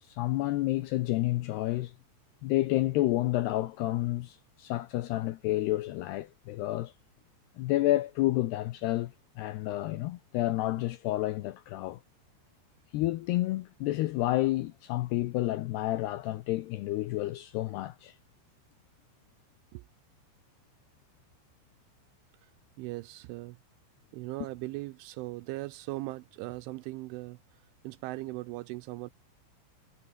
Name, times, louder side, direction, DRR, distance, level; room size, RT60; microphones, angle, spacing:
voice 1, 0.0-1.9 2.4-6.9 7.6-12.0 12.9-18.2, left 16 dB, 85° left, 2.3 m, -30 dB
voice 2, 22.8-23.6 24.1-29.1, right 20 dB, 80° right, 2.9 m, -39 dB
omnidirectional pair, 5.8 m